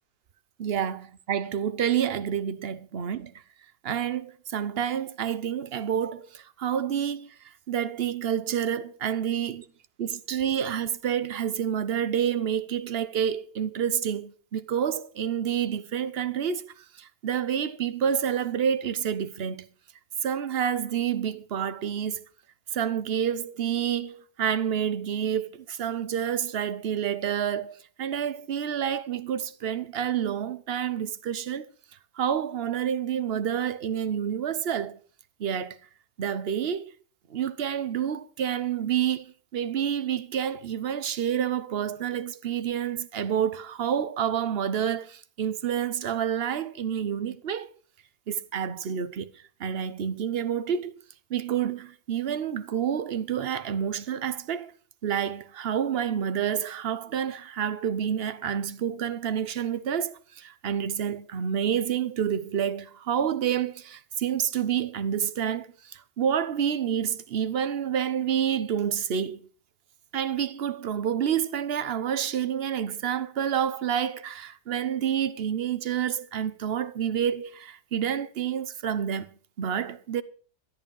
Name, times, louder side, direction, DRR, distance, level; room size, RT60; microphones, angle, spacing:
voice 1, 0.6-3.3 3.8-9.7 10.0-19.7 20.2-22.3 22.7-31.7 32.2-35.0 35.4-35.8 36.2-36.8 37.3-47.7 48.3-50.9 51.3-54.7 55.0-69.5 70.1-80.2, right 9 dB, 50° right, 0.9 m, -28 dB
13.0 x 12.0 x 5.4 m
omnidirectional pair, 1.6 m